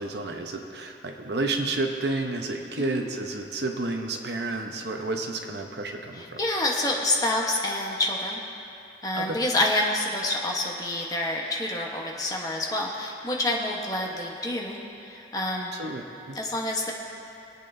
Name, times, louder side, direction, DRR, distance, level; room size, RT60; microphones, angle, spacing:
voice 1, 0.0-6.4 9.1-9.4 15.7-16.4, right 2 dB, 75° right, 4 dB, 0.9 m, -31 dB
voice 2, 6.2-8.4 9.0-15.7 16.3-16.9, left 1 dB, 20° left, -2 dB, 1.1 m, -28 dB
24.0 x 8.5 x 2.7 m, 2.7 s
head